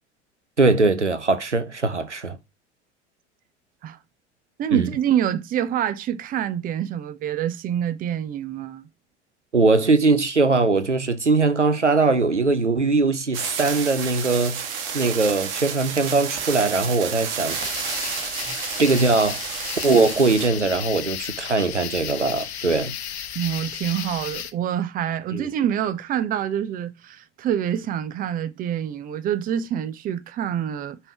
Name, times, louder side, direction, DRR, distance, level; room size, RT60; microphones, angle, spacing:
voice 1, 0.6-2.4 4.7-4.9 9.5-14.6 14.9-17.6 18.0-18.1 18.8-19.4 19.8-22.9 25.3-25.5, right 3 dB, 90° right, 0.7 m, -21 dB
voice 2, 4.6-8.8 18.5-18.6 23.3-31.0, right 10 dB, 25° right, 0.6 m, -26 dB
sound 1, 13.3-20.5, right 7 dB, 55° right, 1.5 m, -31 dB
sound 2, 17.5-24.5, left 9 dB, 65° left, 0.8 m, -34 dB
5.4 x 4.5 x 4.5 m
figure-of-eight pair, 80°, 35 cm